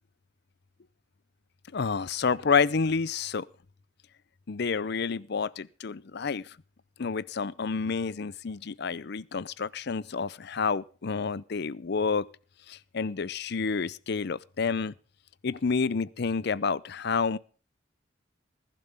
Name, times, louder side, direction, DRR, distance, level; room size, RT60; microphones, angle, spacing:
voice 1, 1.7-3.5 4.5-6.5 7.0-12.3 12.7-14.9 15.4-17.4, left 5 dB, 55° left, 0.6 m, -29 dB
20.5 x 11.5 x 3.5 m
head